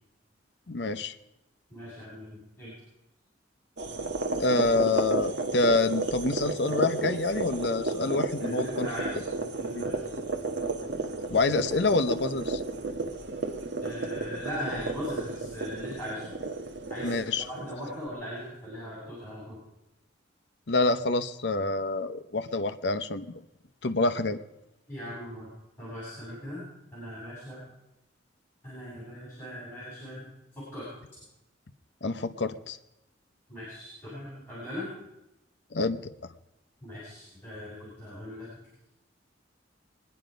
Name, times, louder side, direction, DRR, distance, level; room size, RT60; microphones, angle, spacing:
voice 1, 0.7-1.1 4.4-8.9 9.7-9.8 11.3-12.6 17.0-17.4 20.7-23.4 23.8-24.4 32.0-32.8 35.7-36.1, left 3 dB, 60° left, 10 dB, 0.8 m, -27 dB
voice 2, 1.7-2.7 8.4-10.0 13.8-16.3 16.9-19.6 24.9-25.5 25.8-26.7 26.9-27.6 28.6-30.9 33.5-34.9 36.8-38.5, equal, 10° left, -9 dB, 8.0 m, -39 dB
sound 1, 3.8-18.0, right 3 dB, 65° right, 1.4 m, -32 dB
24.0 x 10.5 x 5.2 m, 0.92 s
head